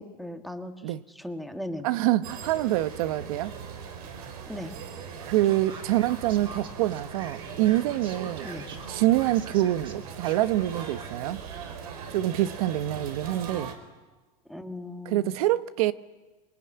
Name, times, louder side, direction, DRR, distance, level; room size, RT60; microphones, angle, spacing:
voice 1, 0.0-1.9 4.5-4.7 8.4-8.7 14.5-15.4, left 1 dB, ahead, 1.6 m, -38 dB
voice 2, 1.8-3.5 5.3-8.5 8.9-11.4 12.1-13.7 15.1-15.9, right 15 dB, 70° right, 1.0 m, -26 dB
sound 1, 2.2-13.7, right 6 dB, 90° right, 4.5 m, -40 dB
Male speech man speaking, 5.4-11.2, right 4 dB, 25° right, 3.1 m, -45 dB
26.0 x 21.5 x 9.8 m
supercardioid pair, 150°, 19 cm